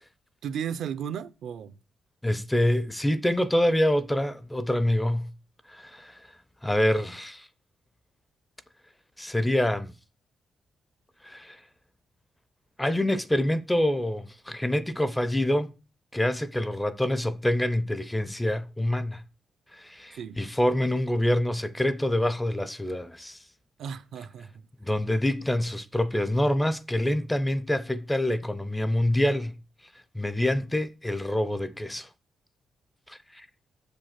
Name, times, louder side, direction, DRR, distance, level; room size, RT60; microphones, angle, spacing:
voice 1, 0.4-1.7 20.2-20.4 23.8-24.7, right 8 dB, 70° right, 0.6 m, -34 dB
voice 2, 2.2-5.3 5.7-6.3 6.6-7.5 9.2-9.9 11.2-11.6 12.8-15.7 16.1-19.2 19.7-23.4 24.8-29.5 30.1-32.1 33.1-33.5, left 1 dB, 5° left, 0.5 m, -26 dB
7.0 x 5.4 x 5.7 m
cardioid pair, 145°, 0 cm